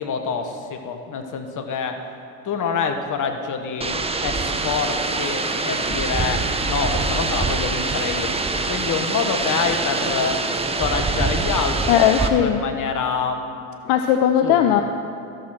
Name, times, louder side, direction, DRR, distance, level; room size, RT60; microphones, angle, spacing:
voice 1, 0.0-2.0 2.4-8.4 8.7-13.7 14.4-14.8, left 5 dB, 45° left, 6 dB, 1.4 m, -26 dB
sound 1, 3.8-12.3, right 3 dB, 15° right, 0.8 m, -24 dB
voice 2, 11.9-12.6 13.9-14.8, left 9 dB, 70° left, 7 dB, 0.7 m, -17 dB
13.5 x 6.5 x 5.8 m, 2.7 s
hypercardioid pair, 75°, 44 cm